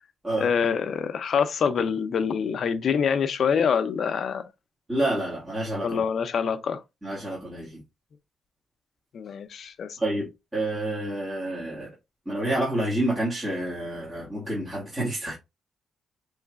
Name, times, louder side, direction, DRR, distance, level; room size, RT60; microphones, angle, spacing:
voice 1, 0.4-4.4 5.8-6.8 9.1-10.0, left 6 dB, 55° left, 0.6 m, -25 dB
voice 2, 4.9-6.0 7.0-7.8 10.0-10.3 10.5-11.9 12.3-15.4, right 1 dB, 15° right, 1.9 m, -28 dB
5.4 x 3.2 x 2.4 m
cardioid pair, 130°, 0 cm